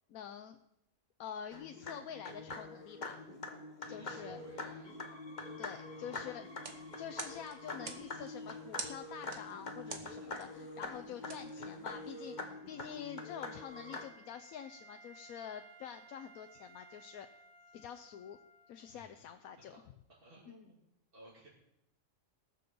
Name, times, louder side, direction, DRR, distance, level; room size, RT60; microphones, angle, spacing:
voice 1, 0.1-0.6 1.2-3.2 3.9-4.4 5.6-6.4 7.0-17.3 17.7-18.4 18.7-19.8 20.5-20.6, left 9 dB, 85° left, 8 dB, 1.2 m, -47 dB
sound 1, 1.5-14.0, left 2 dB, 35° left, 1.4 m, -45 dB
voice 2, 3.8-4.9 5.9-6.4 9.8-10.3 18.9-19.2 20.1-20.8 21.1-21.5, right 1 dB, 40° right, -6 dB, 3.1 m, -57 dB
sound 2, 6.5-12.3, right 4 dB, 60° right, 1.6 m, -49 dB
Wind instrument woodwind instrument, 11.4-19.2, right 2 dB, 15° right, 2.1 m, -60 dB
18.5 x 7.0 x 6.8 m, 0.85 s
omnidirectional pair, 1.4 m